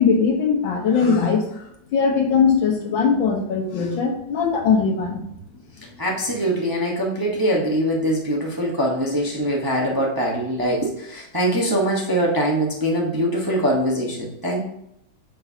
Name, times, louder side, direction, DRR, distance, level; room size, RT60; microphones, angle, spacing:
voice 1, 0.0-1.7 1.9-5.2, left 5 dB, 80° left, 3 dB, 1.9 m, -20 dB
voice 2, 6.0-14.6, right 1 dB, 15° right, -2 dB, 0.8 m, -23 dB
9.1 x 5.5 x 2.8 m, 0.76 s
omnidirectional pair, 2.1 m